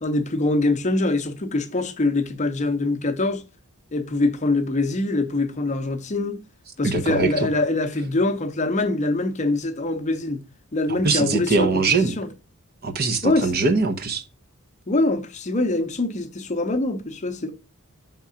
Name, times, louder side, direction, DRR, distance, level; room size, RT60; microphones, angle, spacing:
voice 1, 0.0-3.4 3.9-6.4 6.8-10.4 10.7-12.3 13.2-13.6 14.9-17.5, left 2 dB, 35° left, 0.7 m, -24 dB
voice 2, 6.8-7.5 11.0-12.1 12.8-14.2, right 3 dB, 45° right, 0.7 m, -22 dB
5.8 x 3.6 x 5.6 m
head